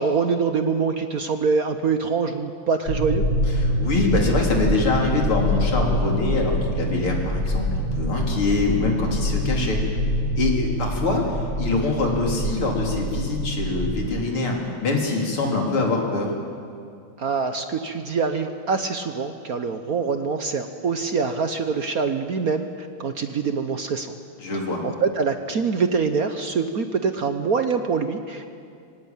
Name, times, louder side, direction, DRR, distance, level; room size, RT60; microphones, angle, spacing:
voice 1, 0.0-3.2 17.2-22.7 23.0-24.1 24.8-28.6, right 5 dB, 55° right, 7 dB, 1.2 m, -24 dB
sound 1, 2.9-14.0, equal, 60° left, 8.0 m, -25 dB
voice 2, 3.6-9.8 10.3-11.2 11.6-14.6 14.8-16.3 24.4-24.8, left 3 dB, 80° left, 0 dB, 4.3 m, -24 dB
24.5 x 18.0 x 9.0 m, 2.4 s
omnidirectional pair, 2.3 m